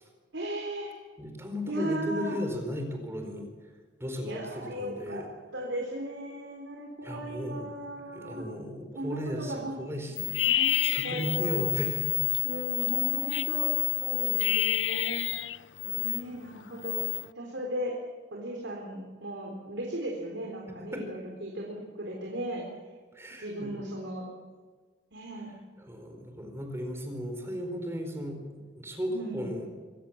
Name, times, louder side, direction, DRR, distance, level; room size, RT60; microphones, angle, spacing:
voice 1, 0.3-0.9 1.7-2.4 4.2-5.3 5.5-8.5 9.0-9.8 10.3-11.7 12.4-13.7 14.0-15.3 15.8-17.0 17.4-17.9 18.3-22.7 23.4-24.3 25.1-25.6 29.1-29.5, right 1 dB, 90° right, 0 dB, 4.1 m, -37 dB
voice 2, 1.2-3.4 4.0-5.3 7.0-7.7 8.1-12.3 16.1-16.2 20.9-21.0 23.1-23.8 25.8-29.7, equal, 15° right, 4 dB, 4.4 m, -36 dB
sound 1, 10.2-16.2 16.6-17.3, left 15 dB, 85° left, 0.6 m, -28 dB
25.0 x 18.5 x 7.3 m, 1.5 s
head